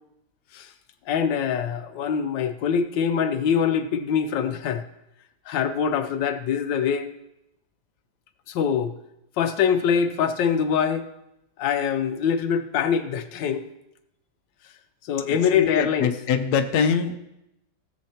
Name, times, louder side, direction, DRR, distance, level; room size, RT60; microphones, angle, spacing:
voice 1, 1.1-4.8 5.5-7.1 8.5-8.9 9.4-11.0 11.6-13.6 15.0-16.1, left 7 dB, 90° left, 8 dB, 1.4 m, -24 dB
voice 2, 15.3-17.1, left 7 dB, 65° left, 6 dB, 1.2 m, -24 dB
17.0 x 7.4 x 2.9 m, 0.85 s
omnidirectional pair, 1.9 m